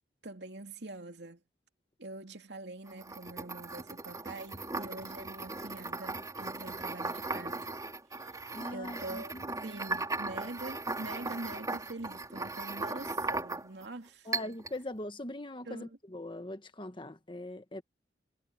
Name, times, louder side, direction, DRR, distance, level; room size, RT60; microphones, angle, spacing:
voice 1, 0.2-1.4 2.0-7.7 8.1-14.5 15.7-16.0, right 2 dB, 75° right, 2.5 m, -45 dB
sound 1, 2.9-13.9 14.3-14.8, right 3 dB, 20° right, 4.3 m, -38 dB
voice 2, 8.5-9.7 14.2-17.8, left 1 dB, 30° left, 1.4 m, -41 dB
head